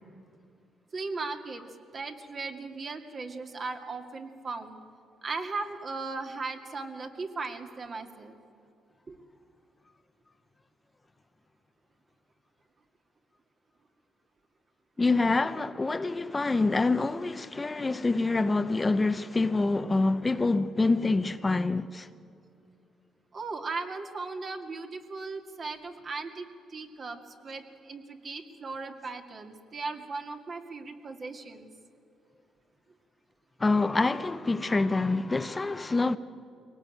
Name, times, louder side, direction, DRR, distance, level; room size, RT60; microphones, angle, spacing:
voice 1, 0.9-1.6 1.9-4.8 5.2-8.3 9.1-9.2 23.3-31.7, right 3 dB, 45° right, 2.4 m, -37 dB
voice 2, 15.0-22.1 33.6-36.2, left 3 dB, 25° left, 0.7 m, -26 dB
23.0 x 18.5 x 9.1 m
cardioid pair, 90°, 0 cm